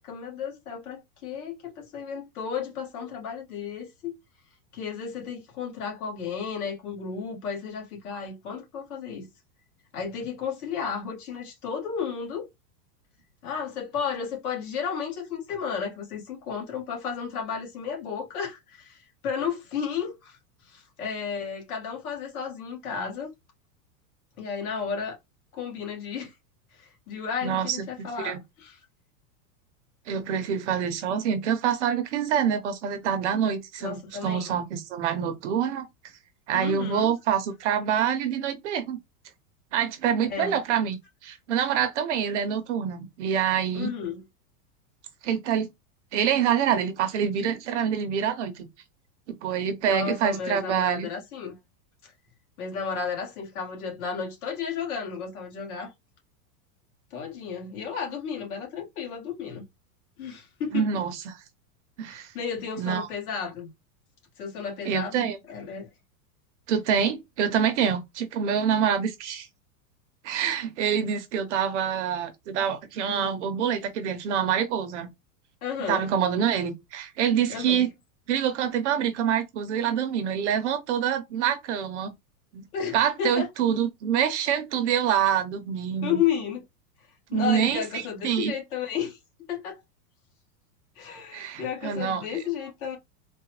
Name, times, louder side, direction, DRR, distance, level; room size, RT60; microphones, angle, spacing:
voice 1, 0.0-4.1 4.7-9.3 9.9-12.5 13.4-20.4 20.7-23.3 24.4-25.2 25.5-26.3 26.8-28.8 33.8-34.6 36.5-37.1 40.2-40.6 43.7-44.2 49.9-51.6 52.0-52.1 52.6-55.9 57.1-59.6 60.2-60.9 62.0-63.7 64.4-65.9 73.1-73.3 75.6-76.0 77.5-77.8 82.7-83.5 86.0-86.6 87.3-89.2 89.5-89.8 90.9-93.0, left 7 dB, 60° left, 1.5 m, -33 dB
voice 2, 27.4-27.8 28.2-28.4 30.1-35.9 36.5-39.0 39.7-41.0 41.2-43.9 45.2-45.7 46.1-48.7 49.3-51.1 60.7-61.4 62.0-62.3 62.8-63.1 64.8-65.4 66.7-69.5 70.2-75.1 75.9-77.9 78.3-82.1 82.5-82.6 82.9-86.2 87.3-87.8 88.2-88.5 91.3-92.4, right 8 dB, 50° right, 0.6 m, -26 dB
3.8 x 2.1 x 2.9 m
supercardioid pair, 170°, 48 cm